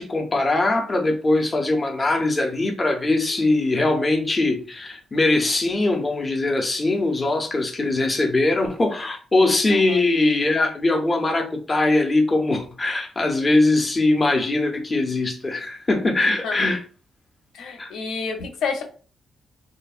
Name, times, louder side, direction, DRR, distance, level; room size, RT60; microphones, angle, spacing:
voice 1, 0.0-16.8 17.8-17.9, left 2 dB, 20° left, 0.5 m, -21 dB
voice 2, 17.5-18.8, left 5 dB, 80° left, 0.7 m, -28 dB
3.2 x 2.0 x 2.3 m
cardioid pair, 175°, 0 cm